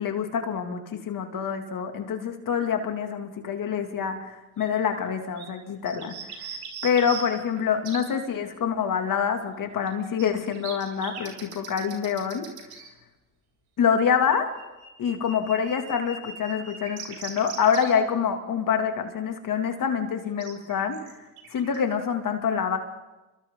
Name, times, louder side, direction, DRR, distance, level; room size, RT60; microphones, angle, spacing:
voice 1, 0.0-6.5 6.8-12.5 13.8-14.5 15.0-21.1 21.5-22.8, left 7 dB, 55° left, 5 dB, 2.8 m, -26 dB
sound 1, 4.6-4.7 5.1-5.2 5.4-5.5 5.9-8.0 9.9-12.9 14.3-17.9 20.4-21.8, right 6 dB, 65° right, 4.2 m, -40 dB
29.0 x 23.0 x 3.9 m, 1.1 s
supercardioid pair, 65°, 40 cm